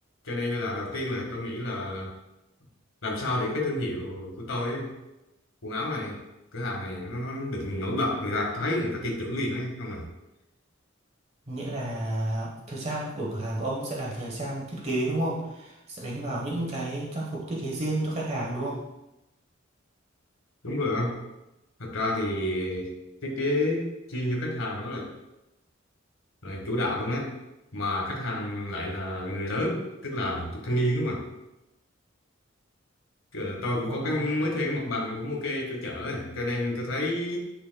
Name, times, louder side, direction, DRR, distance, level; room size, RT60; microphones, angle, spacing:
voice 1, 0.2-2.1 3.0-4.9 5.6-6.2 6.5-10.1 20.6-21.2 21.8-22.9 23.2-25.1 26.4-27.3 27.7-31.2 33.3-37.4, left 1 dB, 85° left, -1 dB, 1.7 m, -29 dB
voice 2, 11.5-18.8 33.8-34.3, right 1 dB, 35° right, -4 dB, 1.2 m, -31 dB
9.5 x 5.1 x 2.3 m, 0.95 s
head